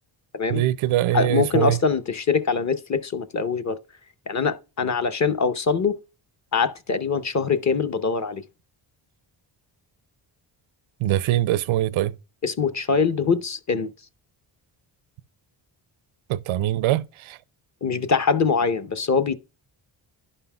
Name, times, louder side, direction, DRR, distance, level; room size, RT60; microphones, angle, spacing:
voice 1, 0.5-1.8 11.0-12.1 16.3-17.4, right 14 dB, 85° right, 0.6 m, -23 dB
voice 2, 1.1-3.8 4.3-6.0 6.5-8.4 12.4-13.9 17.8-19.3, left 5 dB, 35° left, 0.7 m, -23 dB
11.0 x 5.5 x 2.3 m
cardioid pair, 65°, 48 cm